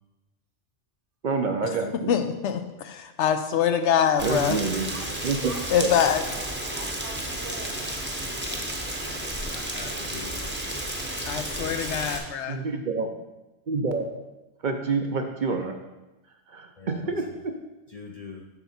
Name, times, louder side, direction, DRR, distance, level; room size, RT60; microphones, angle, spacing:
voice 1, 1.2-2.1 4.2-4.9 5.2-5.5 5.8-5.9 12.5-13.1 13.7-14.0 14.6-15.7 16.5-17.2, right 4 dB, 50° right, 5 dB, 0.6 m, -27 dB
voice 2, 2.1-4.6 5.7-6.2 11.3-12.6, left 8 dB, 75° left, 8 dB, 0.9 m, -24 dB
Rain, 4.2-12.2, right 1 dB, 10° right, 0.7 m, -32 dB
voice 3, 5.4-8.0, right 3 dB, 70° right, 1 dB, 1.4 m, -43 dB
voice 4, 9.5-10.7 16.8-17.4 17.9-18.5, left 4 dB, 45° left, 2 dB, 0.5 m, -43 dB
7.0 x 5.9 x 4.2 m, 1.1 s
omnidirectional pair, 1.2 m